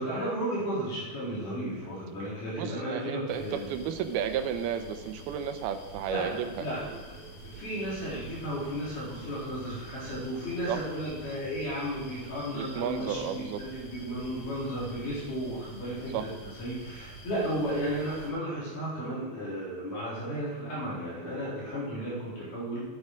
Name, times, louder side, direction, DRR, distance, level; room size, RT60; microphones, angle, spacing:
voice 1, 0.0-3.7 6.1-22.8, equal, 55° left, -8 dB, 5.5 m, -34 dB
voice 2, 2.5-6.7 10.7-10.8 12.5-13.6 16.1-16.3, right 8 dB, 85° right, 8 dB, 2.7 m, -33 dB
sound 1, 3.3-18.3, right 2 dB, 75° left, 5.1 m, -47 dB
10.0 x 10.0 x 4.7 m, 1.2 s
omnidirectional pair, 4.3 m